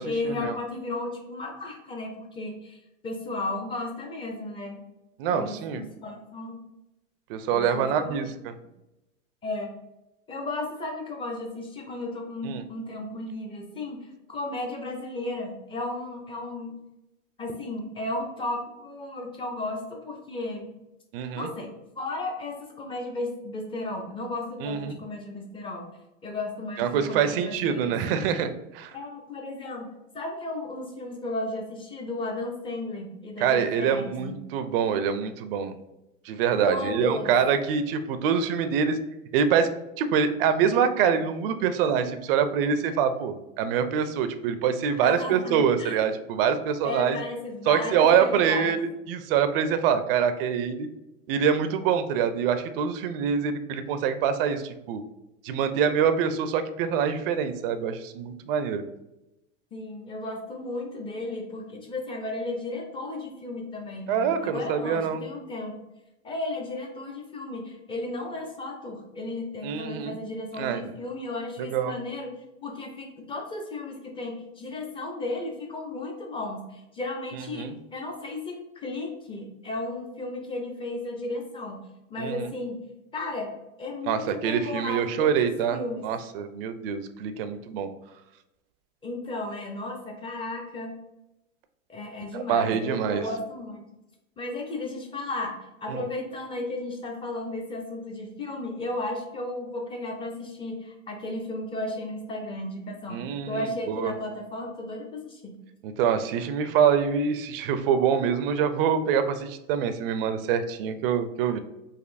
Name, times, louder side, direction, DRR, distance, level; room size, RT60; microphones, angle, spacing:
voice 1, 0.0-4.8 5.3-6.6 7.5-8.3 9.4-9.7 10.3-16.7 17.4-20.7 21.4-25.9 26.2-28.3 28.9-29.9 30.1-34.4 36.6-37.3 45.0-46.1 46.8-48.8 59.7-65.8 66.2-72.3 72.6-81.8 82.1-82.8 83.1-83.5 83.8-86.1 89.0-91.0 91.9-93.8 94.4-103.2 103.5-105.6, left 2 dB, 15° left, 2 dB, 0.5 m, -34 dB
voice 2, 5.2-5.8 7.3-8.5 12.4-12.6 21.1-21.5 24.6-25.0 26.8-29.0 33.4-35.7 36.3-39.0 39.3-39.7 40.0-47.2 47.7-50.9 51.3-55.0 55.4-58.8 64.1-65.2 69.6-70.2 70.6-70.8 71.6-72.0 77.5-77.8 82.2-82.5 84.1-87.9 92.3-93.3 95.9-96.0 103.1-104.1 105.8-111.6, right 7 dB, 45° right, 10 dB, 0.4 m, -25 dB
4.1 x 2.6 x 2.5 m, 0.94 s
hypercardioid pair, 110°, 40 cm